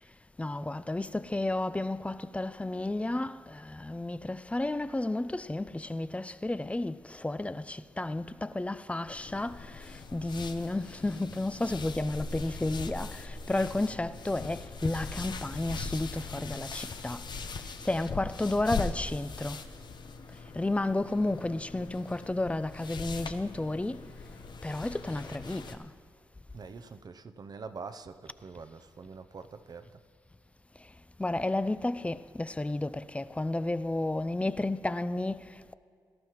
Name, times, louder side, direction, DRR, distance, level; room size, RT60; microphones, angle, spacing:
voice 1, 0.4-17.2 17.8-19.6 20.5-24.0 24.6-25.9 31.2-35.7, left 2 dB, 15° left, 0.4 m, -32 dB
sound 1, 9.1-25.8, left 4 dB, 60° left, 0.8 m, -41 dB
voice 2, 26.5-30.0, right 4 dB, 50° right, 0.6 m, -45 dB
18.5 x 12.5 x 3.1 m
supercardioid pair, 45°, 8 cm